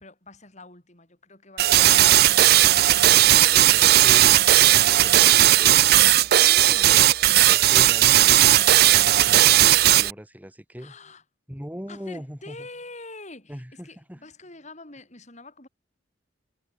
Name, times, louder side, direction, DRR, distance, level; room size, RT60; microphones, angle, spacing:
voice 1, 0.0-2.7 3.4-3.9 6.4-7.0 10.8-11.2 11.9-15.7, left 2 dB, 35° left, 5.8 m, -45 dB
sound 1, 1.6-10.1, right 14 dB, 50° right, 0.4 m, -16 dB
voice 2, 3.0-6.1 6.7-8.6 9.1-10.9 11.5-12.7 13.5-14.2, equal, 10° right, 5.3 m, -40 dB
head